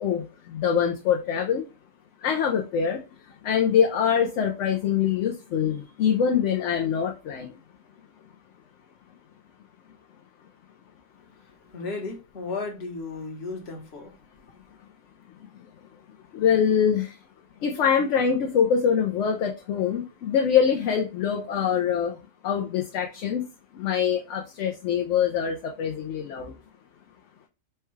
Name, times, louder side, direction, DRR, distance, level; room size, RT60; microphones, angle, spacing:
voice 1, 0.0-1.7 2.2-3.0 3.4-7.5 15.5-15.6 16.3-17.2 17.6-22.2 22.4-23.5 23.7-26.5, left 7 dB, 65° left, 0.9 m, -24 dB
voice 2, 11.3-14.1 14.4-14.6, left 3 dB, 50° left, 1.3 m, -35 dB
4.4 x 2.3 x 3.0 m
omnidirectional pair, 1.4 m